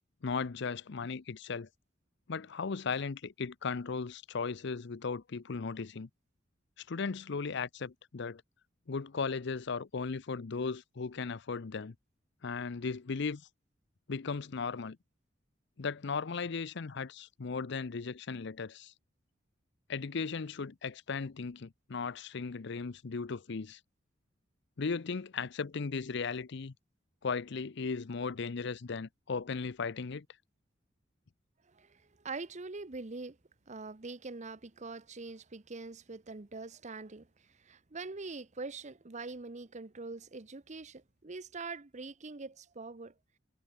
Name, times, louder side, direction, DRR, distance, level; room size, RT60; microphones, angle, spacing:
voice 1, 0.2-1.7 2.3-6.1 6.9-8.4 8.9-11.9 12.4-13.5 14.1-15.0 15.8-18.9 19.9-23.8 24.8-26.7 27.2-30.3, left 5 dB, 65° left, 0.6 m, -36 dB
voice 2, 31.7-33.4 33.7-37.3 37.6-43.1, right 3 dB, 35° right, 0.9 m, -43 dB
head